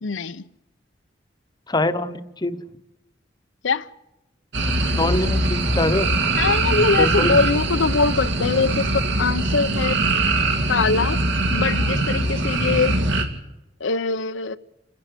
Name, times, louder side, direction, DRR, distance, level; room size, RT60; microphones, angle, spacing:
voice 1, 0.0-0.4 3.6-3.9 6.3-10.0 10.7-11.2 11.5-13.0 13.8-14.6, left 4 dB, 85° left, 0.7 m, -22 dB
voice 2, 1.7-2.6 4.9-6.1 7.0-7.4, left 2 dB, 20° left, 0.9 m, -23 dB
sound 1, 4.5-13.2, right 2 dB, 70° right, 2.5 m, -22 dB
29.5 x 10.5 x 8.3 m
head